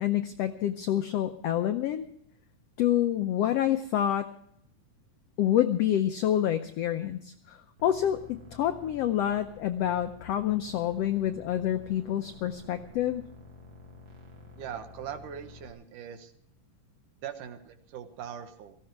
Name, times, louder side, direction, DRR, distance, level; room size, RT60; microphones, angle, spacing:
voice 1, 0.0-2.1 2.8-4.3 5.4-13.2, left 11 dB, 85° left, 8 dB, 1.4 m, -27 dB
sound 1, 7.8-15.7, left 2 dB, 40° right, 2.7 m, -50 dB
voice 2, 14.6-16.3 17.2-18.8, right 8 dB, 75° right, 7 dB, 2.8 m, -41 dB
17.5 x 15.0 x 4.6 m, 0.67 s
omnidirectional pair, 3.7 m